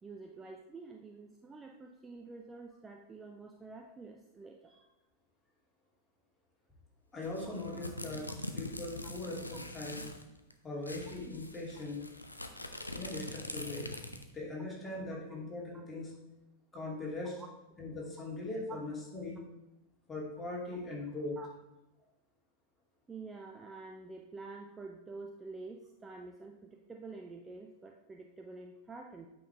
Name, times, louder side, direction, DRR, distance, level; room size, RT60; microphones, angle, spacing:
voice 1, 0.0-4.7 7.4-7.5 11.8-11.9 15.1-15.4 17.4-17.5 18.7-18.8 21.4-21.5 23.1-29.3, right 3 dB, 15° right, 3 dB, 0.6 m, -48 dB
voice 2, 7.1-8.3 8.6-10.0 10.6-12.0 12.9-13.9 14.3-16.1 16.7-17.4 17.8-19.4 20.1-21.4, left 2 dB, 15° left, -4 dB, 2.5 m, -40 dB
sound 1, 7.2-10.2 10.5-10.6 10.8-14.4, left 1 dB, 85° left, 0.6 m, -43 dB
8.5 x 5.5 x 3.4 m, 0.97 s
figure-of-eight pair, 90°, 0 cm